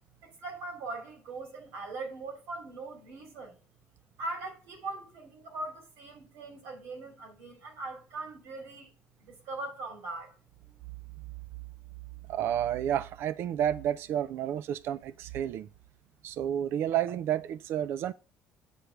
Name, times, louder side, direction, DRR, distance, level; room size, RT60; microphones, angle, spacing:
voice 1, 0.2-3.6 4.2-8.9 9.2-10.3, right 2 dB, 85° right, 2.6 m, -40 dB
voice 2, 12.3-15.7 16.2-18.1, right 10 dB, 65° right, 0.3 m, -30 dB
8.0 x 3.3 x 5.8 m
cardioid pair, 130°, 4 cm